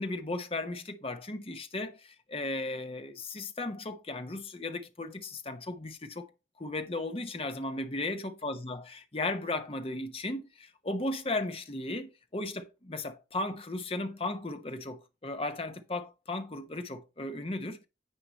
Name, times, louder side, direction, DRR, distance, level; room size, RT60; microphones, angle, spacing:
voice 1, 0.0-6.3 6.6-17.9, left 2 dB, 30° left, 0.9 m, -36 dB
9.8 x 4.8 x 4.3 m
head